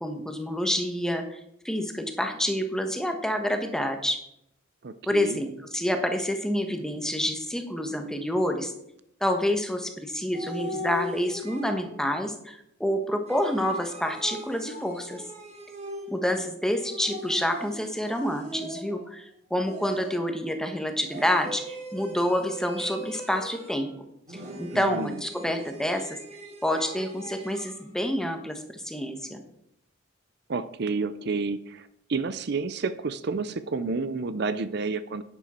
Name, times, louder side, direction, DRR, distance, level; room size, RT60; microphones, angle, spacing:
voice 1, 0.0-1.4 1.6-4.2 5.1-8.7 9.2-15.2 16.1-23.9 24.3-26.2 26.6-29.4, equal, 5° left, 5 dB, 1.2 m, -28 dB
voice 2, 4.8-5.4 24.7-25.2 30.5-35.2, right 4 dB, 55° right, 13 dB, 0.5 m, -30 dB
sound 1, 10.3-12.1 13.3-16.3 16.8-19.1 19.7-20.4 21.1-23.9 24.3-27.8, equal, 35° right, 3.0 m, -40 dB
11.0 x 10.0 x 4.4 m, 0.76 s
head